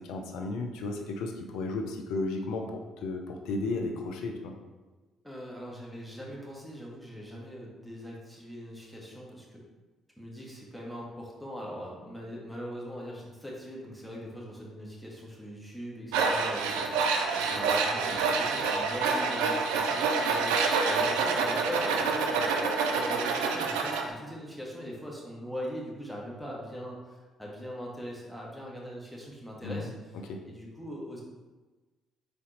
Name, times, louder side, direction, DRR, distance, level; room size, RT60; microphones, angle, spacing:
voice 1, 0.1-4.5 29.6-29.9 30.3-30.4, left 2 dB, 70° left, 3 dB, 0.5 m, -34 dB
voice 2, 5.2-9.6 10.2-30.1 30.4-31.2, equal, 5° left, -3 dB, 1.4 m, -41 dB
Tools, 16.1-24.1, right 4 dB, 80° right, 0.4 m, -27 dB
4.0 x 3.4 x 3.8 m, 1.2 s
hypercardioid pair, 50°, 0 cm